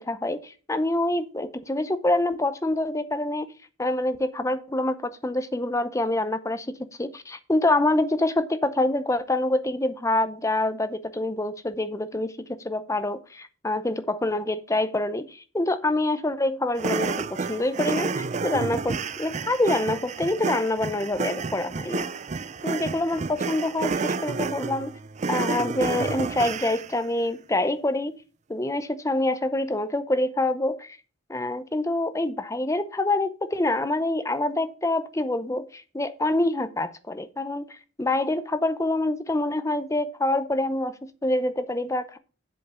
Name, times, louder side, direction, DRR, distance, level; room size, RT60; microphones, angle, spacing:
voice 1, 0.0-3.5 3.8-6.7 7.0-22.1 22.6-25.0 25.3-28.1 28.5-31.0 31.3-42.2, left 2 dB, 15° left, 0.6 m, -26 dB
sound 1, 16.8-27.0, right 4 dB, 35° right, 0.4 m, -30 dB
7.8 x 5.1 x 6.7 m
head